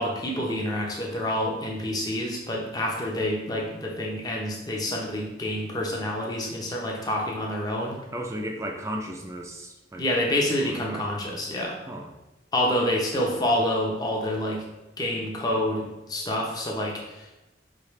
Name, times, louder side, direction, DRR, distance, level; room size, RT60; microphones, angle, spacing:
voice 1, 0.0-8.0 10.0-11.8 12.5-14.6 15.0-17.4, left 1 dB, 20° left, -1 dB, 0.7 m, -28 dB
voice 2, 8.1-10.0 10.6-11.1 11.9-12.1, right 1 dB, 15° right, 2 dB, 0.4 m, -35 dB
4.8 x 2.8 x 3.1 m, 1.0 s
head